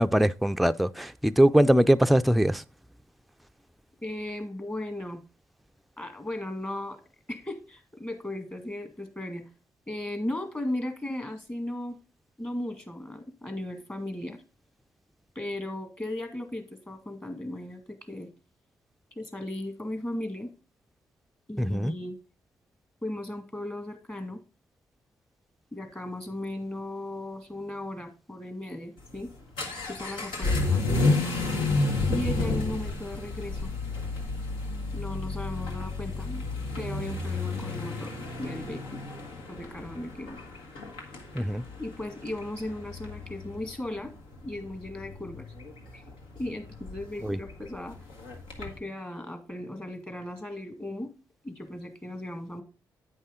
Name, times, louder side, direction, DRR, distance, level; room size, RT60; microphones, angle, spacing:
voice 1, 0.0-2.6 21.6-21.9 41.4-41.6 47.2-47.4, equal, ahead, 0.4 m, -22 dB
voice 2, 4.0-5.2 6.0-7.0 7.3-9.5 9.9-12.0 12.4-14.4 15.4-18.3 19.1-20.5 21.5-22.2 23.0-24.4 25.7-29.3 29.9-31.2 32.1-33.7 34.9-36.4 36.8-39.0 39.5-40.4 41.8-44.1 44.4-45.5 45.9-46.0 46.4-48.0 48.6-51.1 51.4-52.6, left 1 dB, 25° left, 1.8 m, -36 dB
Vehicle / Accelerating revving vroom, 29.0-48.8, left 3 dB, 80° left, 1.4 m, -32 dB
8.6 x 5.5 x 3.7 m
supercardioid pair, 45°, 8 cm